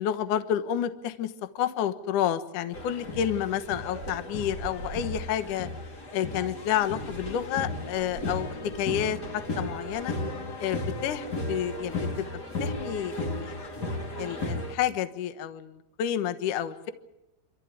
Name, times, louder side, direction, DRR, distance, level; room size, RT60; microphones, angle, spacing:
voice 1, 0.0-5.7 6.1-10.1 10.6-13.6 14.2-16.9, left 10 dB, 80° left, 10 dB, 1.8 m, -30 dB
sound 1, 2.7-14.7, left 2 dB, 35° left, 1.7 m, -35 dB
26.5 x 14.0 x 9.6 m, 0.91 s
omnidirectional pair, 5.5 m